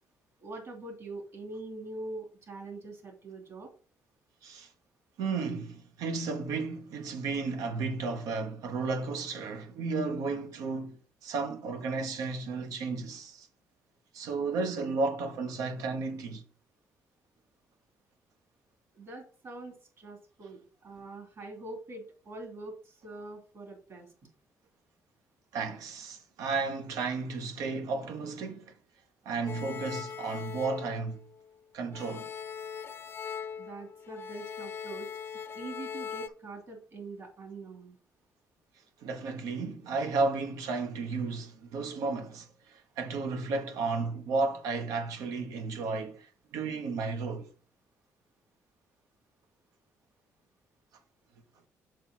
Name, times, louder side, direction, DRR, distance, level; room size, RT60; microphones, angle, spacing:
voice 1, 0.4-3.7 18.9-24.1 33.6-35.1 35.5-38.0, right 2 dB, 55° right, 2.9 m, -43 dB
voice 2, 5.2-11.0 11.2-13.5 14.1-16.4 25.5-28.7 29.2-31.2 31.7-32.3 39.0-47.5, right 4 dB, 85° right, 1.1 m, -33 dB
sound 1, 29.5-31.6 31.9-36.3, left 7 dB, 40° left, 0.6 m, -40 dB
6.7 x 4.6 x 4.1 m
cardioid pair, 80°, 6 cm